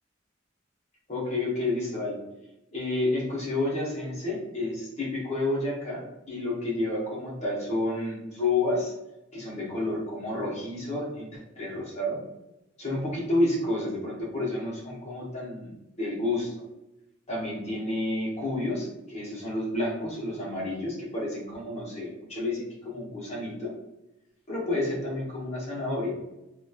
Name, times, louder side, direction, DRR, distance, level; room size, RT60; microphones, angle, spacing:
voice 1, 1.1-2.2 2.7-8.9 9.3-12.2 12.8-15.7 16.0-16.5 17.3-23.7 24.5-26.2, left 2 dB, 35° left, -5 dB, 0.9 m, -30 dB
2.9 x 2.3 x 2.3 m, 0.92 s
head